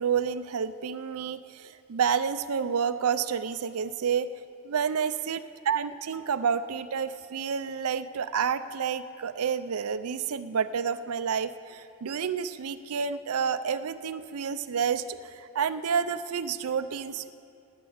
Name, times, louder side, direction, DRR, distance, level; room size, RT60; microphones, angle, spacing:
voice 1, 0.0-4.3 4.6-5.4 5.7-17.3, right 7 dB, 80° right, 13 dB, 0.5 m, -29 dB
11.0 x 9.7 x 8.7 m, 2.6 s
head